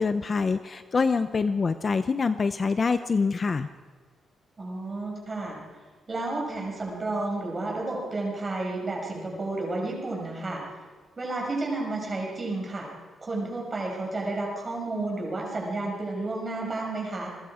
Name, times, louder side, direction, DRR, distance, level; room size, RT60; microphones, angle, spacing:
voice 1, 0.0-3.7, left 4 dB, 30° left, 11 dB, 0.6 m, -25 dB
voice 2, 4.6-5.6 6.1-10.6 11.2-12.9 13.2-17.3, right 2 dB, 25° right, -1 dB, 5.8 m, -31 dB
29.0 x 22.0 x 5.0 m, 1.4 s
wide cardioid pair, 180°, 0 cm